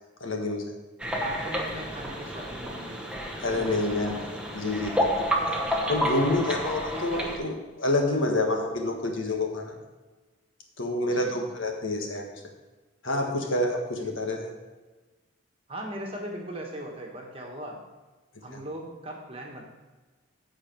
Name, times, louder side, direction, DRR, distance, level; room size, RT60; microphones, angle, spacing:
voice 1, 0.2-0.7 3.4-4.2 4.5-5.6 5.9-9.7 10.8-12.3 13.0-14.5 18.5-18.6, left 2 dB, 70° left, 2 dB, 1.6 m, -28 dB
sound 1, 1.0-7.4, equal, 5° right, 1.0 m, -30 dB
voice 2, 1.2-3.2 3.4-4.3 6.9-7.3 11.1-11.4 14.0-14.1 15.7-17.8 18.4-19.6, right 1 dB, 25° right, 0 dB, 1.4 m, -39 dB
14.0 x 4.9 x 4.6 m, 1.2 s
head